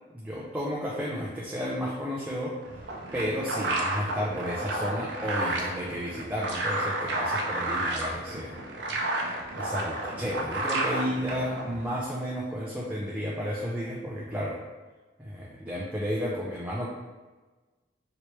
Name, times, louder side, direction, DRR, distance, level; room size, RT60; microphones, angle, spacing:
voice 1, 0.1-2.5 3.1-8.5 9.5-14.6 15.2-16.9, equal, 10° right, -6 dB, 0.4 m, -32 dB
sound 1, 2.6-11.9, right 2 dB, 70° right, 0.5 m, -31 dB
3.1 x 2.9 x 3.0 m, 1.2 s
head